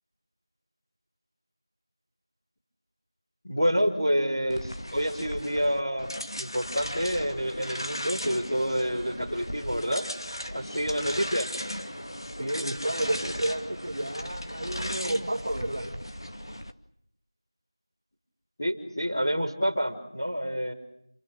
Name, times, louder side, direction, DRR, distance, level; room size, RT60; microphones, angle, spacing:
voice 1, 3.4-6.1 6.4-10.0 10.5-11.5 18.6-20.7, equal, 5° left, -12 dB, 1.1 m, -28 dB
sound 1, 4.5-16.7, equal, 65° left, 2.1 m, -37 dB
voice 2, 12.4-16.0, right 1 dB, 15° right, 0 dB, 2.0 m, -31 dB
28.5 x 20.5 x 8.9 m, 0.75 s
figure-of-eight pair, 180°, 3 cm